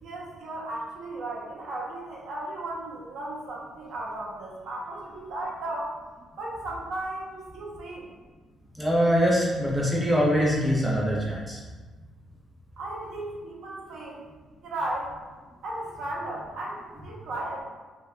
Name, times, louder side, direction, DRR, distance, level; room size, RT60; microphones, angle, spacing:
voice 1, 0.0-5.9 6.4-8.1 12.8-14.3 14.6-15.1 15.6-17.6, right 1 dB, 75° right, -3 dB, 0.6 m, -35 dB
voice 2, 8.7-11.6, equal, 5° right, -5 dB, 0.6 m, -23 dB
2.7 x 2.2 x 2.4 m, 1.3 s
cardioid pair, 90°, 0 cm